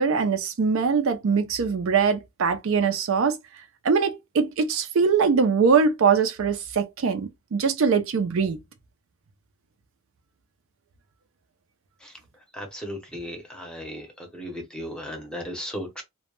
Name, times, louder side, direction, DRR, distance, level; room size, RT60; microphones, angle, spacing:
voice 1, 0.0-3.4 3.8-8.6, right 5 dB, 65° right, 0.4 m, -22 dB
voice 2, 12.6-14.0 14.3-16.0, equal, 5° left, 0.7 m, -35 dB
2.2 x 2.0 x 3.0 m
head